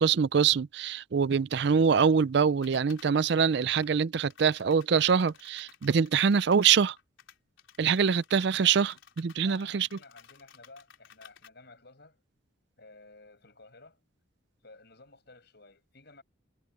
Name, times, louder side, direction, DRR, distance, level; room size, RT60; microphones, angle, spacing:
voice 1, 0.0-7.0 7.8-9.9, right 6 dB, 55° right, 0.4 m, -24 dB
sound 1, 2.6-3.1 3.8-3.9 4.3-11.5, left 8 dB, 75° left, 4.1 m, -56 dB
voice 2, 9.4-12.2 12.8-14.0 14.6-16.2, left 3 dB, 55° left, 7.3 m, -54 dB
head